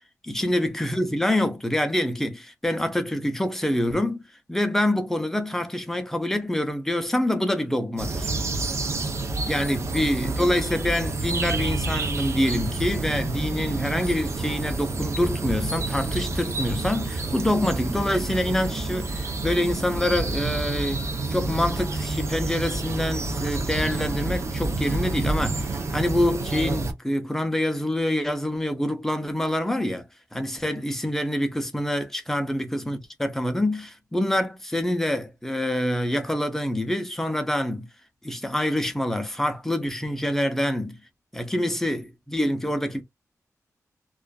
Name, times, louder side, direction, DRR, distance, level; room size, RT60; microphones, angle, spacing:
voice 1, 0.2-4.2 4.5-8.3 9.4-21.0 21.3-30.1 30.3-37.9 38.2-41.0 41.3-43.0, left 1 dB, 5° left, 0.5 m, -26 dB
sound 1, 8.0-26.9, right 2 dB, 55° right, 0.5 m, -28 dB
2.4 x 2.3 x 2.2 m
wide cardioid pair, 125°, 6 cm